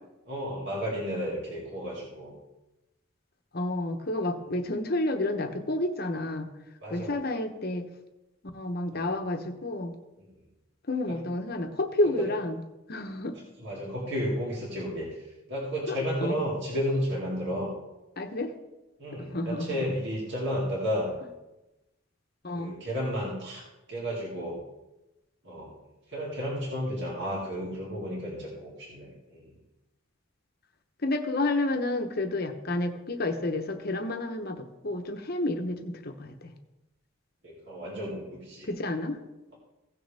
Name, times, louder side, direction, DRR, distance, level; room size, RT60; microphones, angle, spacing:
voice 1, 0.3-2.4 6.8-7.2 8.9-9.2 10.2-10.3 11.1-11.2 12.0-12.2 13.6-17.7 19.0-21.1 22.5-23.6 23.9-24.6 25.4-25.8 26.1-29.6 37.4-38.7, equal, 60° right, -5 dB, 2.5 m, -32 dB
voice 2, 3.5-6.5 6.9-7.9 8.5-10.0 10.9-12.6 12.9-13.4 15.9-16.4 18.2-18.5 19.2-19.9 22.4-22.7 31.0-36.5 38.6-39.2, left 2 dB, 50° left, 6 dB, 1.0 m, -30 dB
16.5 x 6.5 x 3.5 m, 0.97 s
head